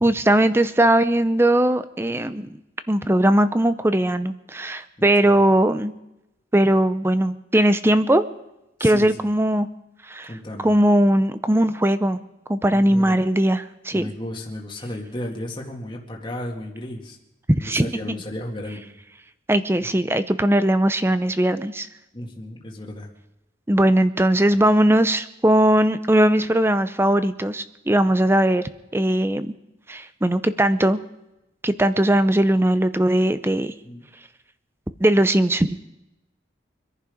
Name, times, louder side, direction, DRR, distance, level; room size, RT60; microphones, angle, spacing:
voice 1, 0.0-2.6 2.9-5.9 6.5-8.2 8.8-9.7 10.1-10.4 10.6-12.2 12.5-14.1 17.5-18.1 19.5-21.9 23.7-29.5 29.9-31.0 31.6-33.7 35.0-35.8, right 1 dB, 15° right, 12 dB, 0.6 m, -19 dB
voice 2, 5.0-5.4 8.8-9.3 10.3-10.7 12.7-13.2 13.9-17.2 17.6-18.9 22.1-23.1 24.5-24.6 33.8-34.0, left 1 dB, 25° left, -1 dB, 2.0 m, -34 dB
25.0 x 11.0 x 5.1 m, 0.90 s
head